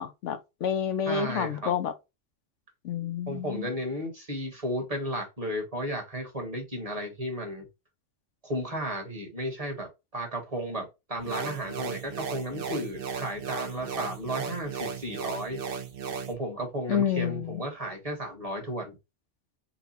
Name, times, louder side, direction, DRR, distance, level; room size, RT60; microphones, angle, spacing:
voice 1, 0.0-1.9 2.8-3.7 16.9-17.6, left 8 dB, 80° left, 1.0 m, -29 dB
voice 2, 1.1-1.7 3.3-7.7 8.4-15.6 16.3-19.0, equal, 30° right, 1.3 m, -34 dB
sound 1, 11.2-16.3, right 6 dB, 55° right, 0.8 m, -36 dB
4.1 x 2.2 x 4.0 m
omnidirectional pair, 1.3 m